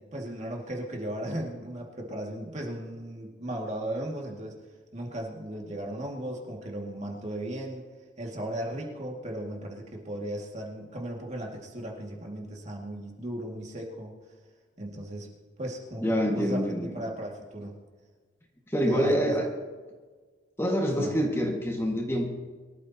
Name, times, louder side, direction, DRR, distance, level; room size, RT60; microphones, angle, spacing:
voice 1, 0.0-4.6 4.9-7.9 8.2-14.2 14.8-15.3 15.6-17.8 18.9-19.5 21.0-21.1, right 1 dB, 35° right, -1 dB, 2.2 m, -36 dB
voice 2, 16.0-17.0 18.7-19.5 20.6-22.3, equal, 15° left, 0 dB, 1.9 m, -26 dB
23.5 x 13.5 x 2.9 m, 1.5 s
head